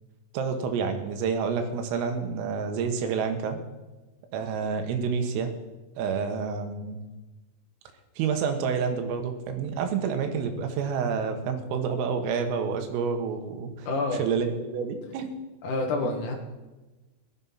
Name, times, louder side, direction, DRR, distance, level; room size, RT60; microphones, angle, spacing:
voice 1, 0.3-3.6 4.3-5.5 6.0-7.0 8.2-13.9 14.2-15.3, right 6 dB, 90° right, 6 dB, 4.1 m, -28 dB
voice 2, 13.8-14.2 15.6-16.3, left 2 dB, 60° left, 1 dB, 2.2 m, -27 dB
17.0 x 12.5 x 5.7 m, 1.1 s
omnidirectional pair, 5.8 m